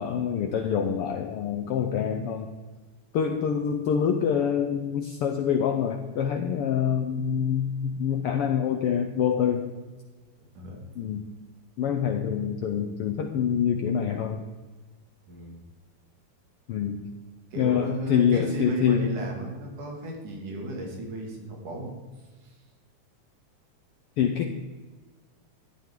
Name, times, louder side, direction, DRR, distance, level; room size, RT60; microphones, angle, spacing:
voice 1, 0.0-2.5 3.1-9.7 11.0-11.2 11.8-14.4 16.7-17.1 17.6-19.1 24.2-24.6, left 8 dB, 90° left, 4 dB, 1.2 m, -26 dB
voice 2, 15.3-15.6 17.5-22.0 22.4-22.6, right 1 dB, 85° right, 0 dB, 3.8 m, -35 dB
14.5 x 11.5 x 3.8 m, 1.3 s
omnidirectional pair, 3.5 m